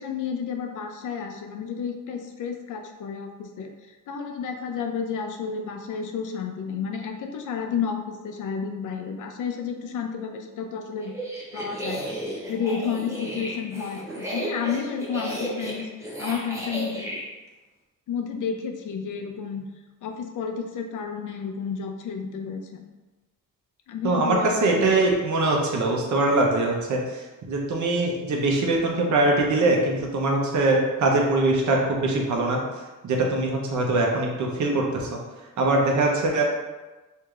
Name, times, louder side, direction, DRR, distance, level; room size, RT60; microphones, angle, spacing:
voice 1, 0.0-11.1 11.5-12.2 12.5-17.1 18.1-19.7 20.0-22.9 23.9-24.8, left 6 dB, 70° left, 5 dB, 0.5 m, -31 dB
sound 1, 11.0-17.2, right 1 dB, 10° right, 0.6 m, -33 dB
voice 2, 24.0-27.0 27.5-32.6 33.0-35.2 35.6-36.4, right 2 dB, 65° right, 0 dB, 0.8 m, -22 dB
4.6 x 2.7 x 2.4 m, 1.2 s
wide cardioid pair, 145°, 32 cm